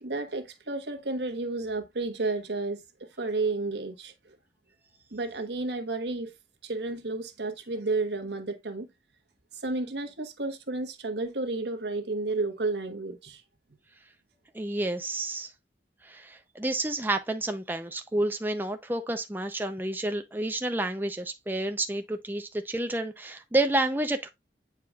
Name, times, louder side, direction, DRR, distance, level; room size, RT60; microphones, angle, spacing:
voice 1, 0.0-4.4 5.1-6.3 6.6-8.9 9.5-13.4, right 3 dB, 80° right, 1.3 m, -32 dB
voice 2, 14.5-15.5 16.0-24.3, right 1 dB, 10° right, 0.5 m, -30 dB
8.7 x 4.7 x 2.3 m
head